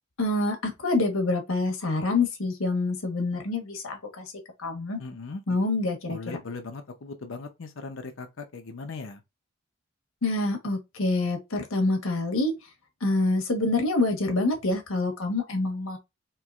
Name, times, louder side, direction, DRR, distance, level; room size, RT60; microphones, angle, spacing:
voice 1, 0.2-4.2 4.6-5.0 5.5-6.4 10.2-12.5 13.0-16.0, left 2 dB, 85° left, 1.3 m, -26 dB
voice 2, 5.0-5.4 6.1-9.2, left 3 dB, 70° left, 0.7 m, -38 dB
4.5 x 3.0 x 2.4 m
head